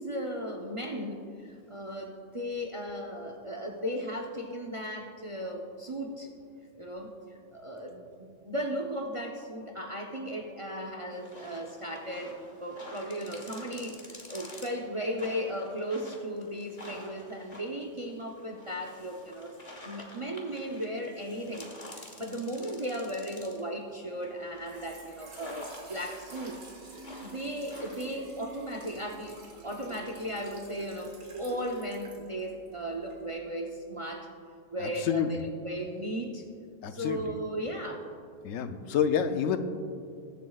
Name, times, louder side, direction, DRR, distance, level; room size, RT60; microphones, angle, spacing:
voice 1, 0.0-6.3 6.8-7.1 7.5-19.6 19.8-26.6 27.2-29.4 29.6-34.3 34.7-36.5 36.9-38.1, equal, 30° right, 2 dB, 0.6 m, -36 dB
sound 1, 11.1-23.7 24.2-28.1, left 1 dB, 30° left, 1.4 m, -49 dB
Trickle dribble / Fill (with liquid), 24.5-33.3, right 2 dB, 85° right, 2.0 m, -48 dB
voice 2, 36.8-37.2 38.4-39.6, left 8 dB, 80° left, 9 dB, 1.0 m, -28 dB
20.5 x 7.4 x 2.4 m, 2.5 s
omnidirectional pair, 1.3 m